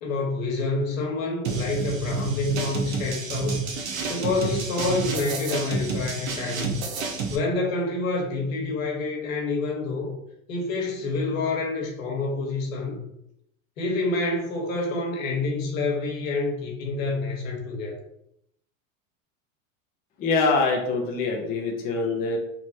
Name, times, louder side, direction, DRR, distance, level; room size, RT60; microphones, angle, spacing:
voice 1, 0.0-3.6 4.1-6.8 7.3-10.1 10.5-13.0 13.8-18.0, left 3 dB, 75° left, -1 dB, 1.1 m, -27 dB
sound 1, 1.4-7.4, right 5 dB, 80° right, 0.7 m, -30 dB
voice 2, 20.2-22.4, left 3 dB, 25° left, 0 dB, 0.4 m, -24 dB
3.2 x 2.1 x 2.7 m, 0.76 s
hypercardioid pair, 110°, 41 cm